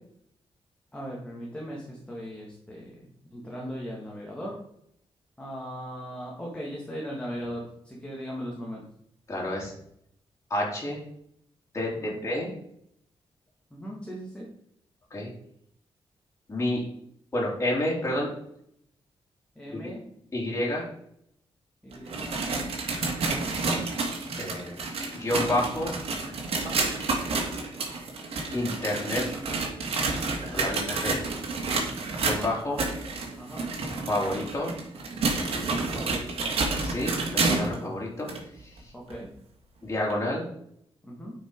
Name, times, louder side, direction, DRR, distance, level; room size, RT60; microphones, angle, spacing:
voice 1, 0.9-4.5 5.4-8.9 12.0-12.2 13.7-14.5 19.6-20.0 21.8-22.4 26.5-26.8 30.4-30.8 31.7-32.0 33.3-33.7 35.9-36.5 38.9-39.3 41.0-41.3, equal, 10° left, -4 dB, 2.4 m, -38 dB
voice 2, 9.3-9.7 10.5-11.0 11.7-12.5 15.1-15.3 16.5-16.8 17.3-18.3 19.7-19.8 20.3-20.8 24.4-24.7 25.1-25.9 28.5-29.2 30.5-31.2 32.1-32.8 34.1-34.7 36.8-38.3 38.6-38.9 39.8-40.4, left 1 dB, 30° left, -4 dB, 3.3 m, -29 dB
sound 1, 21.9-37.8 38.3-38.4 39.1-39.2 40.1-40.2, right 3 dB, 80° right, 2.2 m, -29 dB
9.5 x 5.8 x 4.9 m, 0.72 s
wide cardioid pair, 115°, 10 cm